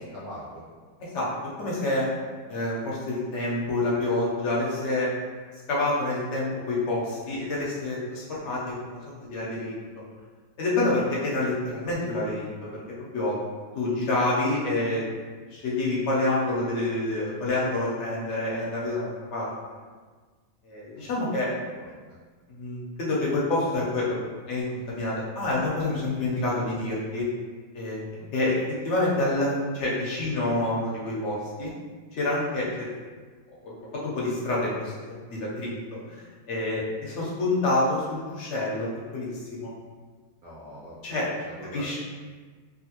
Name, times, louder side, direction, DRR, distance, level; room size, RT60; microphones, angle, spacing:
voice 1, 0.1-0.6 15.5-15.6 21.0-21.1 21.7-22.2 28.2-28.3 32.5-32.7 40.4-42.0, equal, 70° right, -7 dB, 0.9 m, -43 dB
voice 2, 1.6-2.1 2.5-5.1 5.7-9.0 9.3-10.0 10.6-12.8 13.1-13.3 13.7-15.0 15.5-19.5 20.6-21.5 22.5-24.2 24.5-27.3 27.7-28.0 28.3-28.6 28.8-31.7 32.1-32.9 33.6-34.9 35.3-39.7 41.0-41.3 41.7-42.0, left 2 dB, 65° left, -6 dB, 0.7 m, -27 dB
3.0 x 2.4 x 2.9 m, 1.5 s
omnidirectional pair, 2.0 m